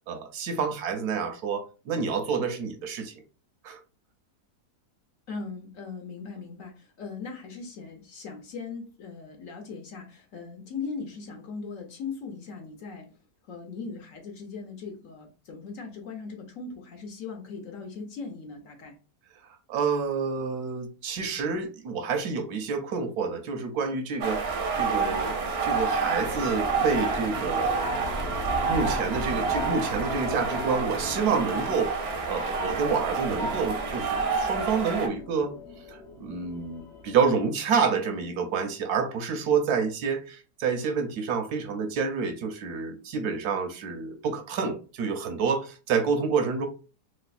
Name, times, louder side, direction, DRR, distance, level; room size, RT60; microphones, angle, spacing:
voice 1, 0.1-3.1 3.6-3.8 19.7-25.4 25.6-27.9 28.6-35.5 35.9-46.7, right 5 dB, 75° right, 1.1 m, -28 dB
voice 2, 5.3-13.2 13.4-19.0, left 4 dB, 60° left, 1.0 m, -39 dB
sound 1, 24.2-35.1, right 4 dB, 55° right, 0.7 m, -28 dB
sound 2, 24.4-37.5, left 2 dB, 35° left, 0.6 m, -43 dB
sound 3, 26.3-31.8, left 5 dB, 85° left, 1.2 m, -43 dB
3.1 x 3.1 x 2.4 m
omnidirectional pair, 1.8 m